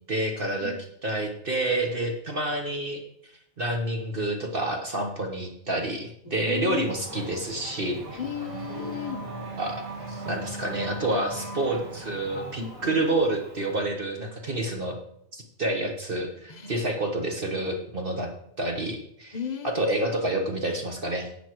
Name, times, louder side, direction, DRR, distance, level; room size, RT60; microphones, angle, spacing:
voice 1, 0.1-0.7 1.0-3.0 3.6-8.2 9.6-9.8 10.1-15.0 15.3-18.3 18.6-19.4 19.6-21.3, right 1 dB, 45° right, 3 dB, 1.4 m, -28 dB
voice 2, 6.2-6.9 8.2-9.3 12.6-13.0 16.5-16.7 19.3-20.1, left 7 dB, 35° left, 6 dB, 0.9 m, -35 dB
Race car auto racing / Accelerating revving vroom, 6.6-13.8, right 1 dB, 85° right, 3.1 m, -39 dB
11.0 x 7.7 x 4.6 m, 0.72 s
omnidirectional pair, 1.4 m